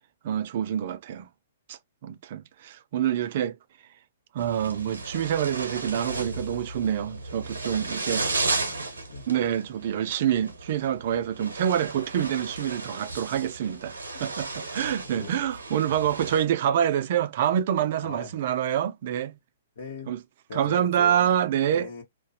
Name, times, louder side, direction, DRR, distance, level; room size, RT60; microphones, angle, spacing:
voice 1, 0.2-1.3 1.7-3.6 4.3-8.3 9.3-13.9 14.2-19.3 20.1-20.2 20.5-21.9, right 10 dB, 55° right, 0.5 m, -26 dB
sound 1, 4.4-16.5, right 3 dB, 85° right, 0.8 m, -34 dB
voice 2, 8.1-9.3 15.1-15.3 15.9-16.0 18.0-18.4 19.8-20.1 20.5-21.4 21.7-22.0, left 4 dB, 70° left, 1.2 m, -40 dB
2.5 x 2.2 x 2.6 m
hypercardioid pair, 125°, 0 cm